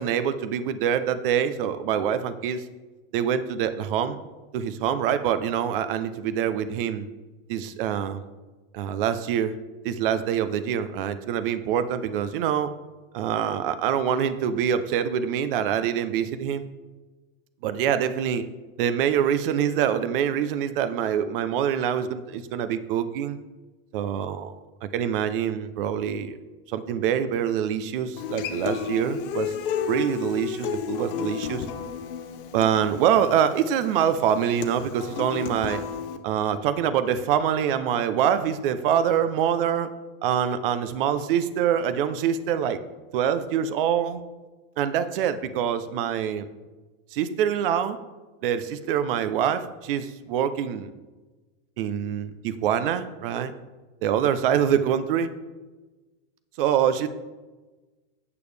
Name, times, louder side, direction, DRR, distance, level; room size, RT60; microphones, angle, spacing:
voice 1, 0.0-2.6 3.1-4.2 4.5-7.1 7.5-8.2 8.7-9.6 9.8-12.7 13.1-16.7 17.6-18.4 18.8-23.4 23.9-24.5 24.8-26.4 26.7-29.5 29.9-31.6 32.5-35.8 36.2-39.9 40.2-42.8 43.1-44.2 44.8-46.5 47.1-48.0 48.4-50.9 51.8-53.5 54.0-55.3 56.6-57.1, right 9 dB, 65° right, 12 dB, 0.6 m, -25 dB
Human voice / Acoustic guitar, 28.2-36.2, left 7 dB, 65° left, 0.7 m, -32 dB
8.4 x 6.9 x 3.3 m, 1.2 s
supercardioid pair, 165°, 29 cm